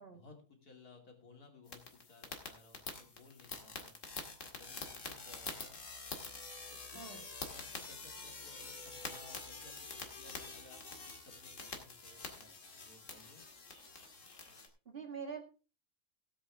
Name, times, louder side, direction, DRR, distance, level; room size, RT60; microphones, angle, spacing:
voice 1, 0.0-4.0 4.4-5.8 6.7-12.5 12.8-13.4, left 3 dB, 80° left, 2 dB, 3.2 m, -59 dB
sound 1, 1.7-14.7, left 3 dB, 55° left, 2.3 m, -47 dB
voice 2, 14.9-15.4, right 6 dB, 40° right, 5 dB, 1.9 m, -44 dB
17.0 x 8.1 x 3.5 m, 0.34 s
omnidirectional pair, 1.6 m